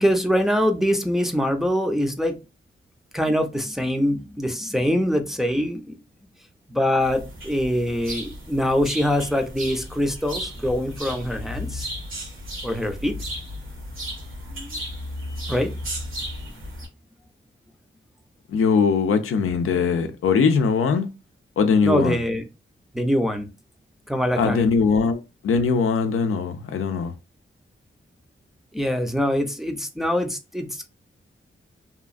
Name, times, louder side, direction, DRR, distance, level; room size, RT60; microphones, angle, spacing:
voice 1, 0.0-2.4 3.1-6.0 6.7-11.9 12.6-13.1 14.5-14.7 15.5-15.7 21.8-22.4 22.9-23.5 24.1-24.7 28.7-30.9, equal, ahead, 0.5 m, -24 dB
sound 1, 7.0-16.9, equal, 75° right, 1.3 m, -34 dB
voice 2, 18.5-21.1 21.6-22.2 24.4-27.1, left 5 dB, 85° left, 0.5 m, -21 dB
2.8 x 2.3 x 2.4 m
cardioid pair, 75°, 21 cm